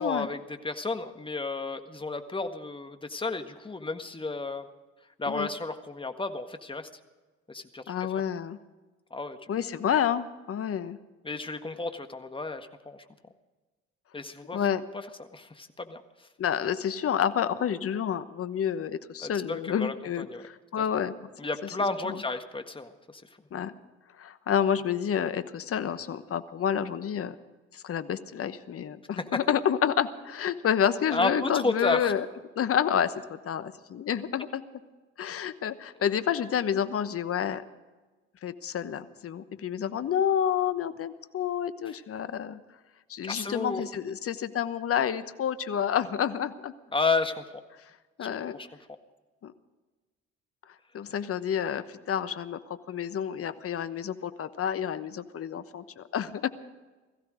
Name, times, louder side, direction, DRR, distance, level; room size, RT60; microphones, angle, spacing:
voice 1, 0.0-4.7 5.2-6.9 7.5-8.2 9.1-9.6 11.2-13.0 14.1-14.6 14.9-16.0 19.2-20.4 21.4-23.2 29.2-29.4 31.1-32.1 41.9-42.0 43.2-43.8 46.9-47.4 48.5-48.7, left 3 dB, 15° left, 8 dB, 1.6 m, -32 dB
voice 2, 7.9-8.6 9.5-11.0 14.5-14.8 16.4-21.3 22.0-22.2 23.5-23.7 24.2-27.3 27.7-32.3 32.6-34.6 35.2-37.6 38.4-42.6 43.1-46.7 48.2-48.6 49.4-49.5 50.9-52.6 52.9-56.5, left 8 dB, 45° left, 13 dB, 1.1 m, -29 dB
18.0 x 15.5 x 5.1 m, 1.2 s
hypercardioid pair, 60°, 33 cm